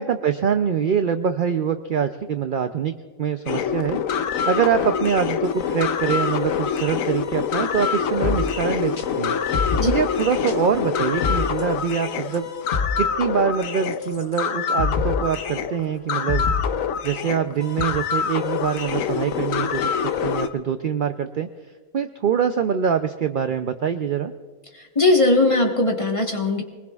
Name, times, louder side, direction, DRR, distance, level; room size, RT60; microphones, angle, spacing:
voice 1, 0.0-4.0 4.4-9.3 9.8-12.5 13.0-16.5 17.0-21.5 21.9-24.3, right 7 dB, 60° right, 8 dB, 0.5 m, -24 dB
sound 1, 3.5-20.5, left 7 dB, 85° left, 1.1 m, -25 dB
sound 2, 8.2-17.8, left 4 dB, 45° left, 1.1 m, -29 dB
voice 2, 24.7-26.6, left 2 dB, 25° left, 1 dB, 1.3 m, -19 dB
24.0 x 20.0 x 2.4 m, 1.5 s
omnidirectional pair, 1.4 m